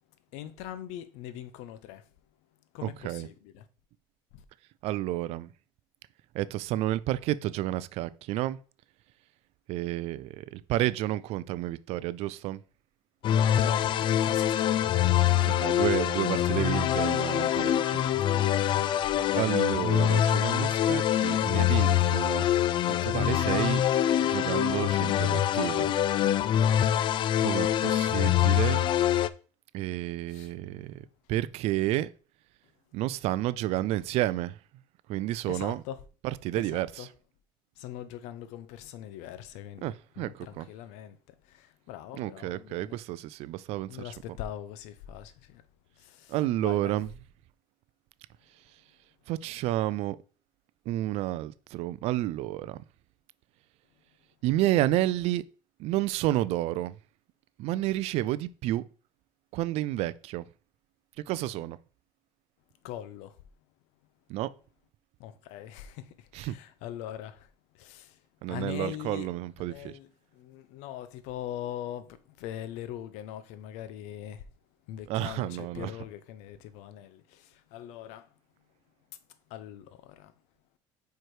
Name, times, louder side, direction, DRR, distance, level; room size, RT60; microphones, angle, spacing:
voice 1, 0.3-2.1 2.7-3.7 4.3-4.4 13.5-15.5 16.7-17.2 17.6-18.3 30.3-30.5 35.5-36.0 36.5-37.1 37.8-43.0 43.9-45.6 46.0-47.0 62.8-63.4 65.2-68.2 68.5-69.3 69.6-74.5 74.9-78.3 79.5-80.3, left 11 dB, 85° left, 0.7 m, -42 dB
voice 2, 2.8-3.3 4.8-5.5 6.3-8.6 9.7-12.6 15.5-18.0 19.3-22.5 22.9-23.8 24.2-25.9 27.4-28.8 29.7-32.1 32.9-34.6 35.1-35.8 36.2-37.1 39.8-40.7 42.2-44.0 46.3-47.1 49.3-50.2 50.9-52.8 54.4-55.4 55.8-56.9 57.6-58.8 59.5-60.5 61.2-61.8 64.3-64.5 66.3-66.6 68.4-70.0 75.1-75.9, right 15 dB, 65° right, 0.4 m, -30 dB
sound 1, 13.2-29.3, left 11 dB, 45° left, 0.4 m, -25 dB
4.8 x 4.6 x 4.6 m
cardioid pair, 125°, 11 cm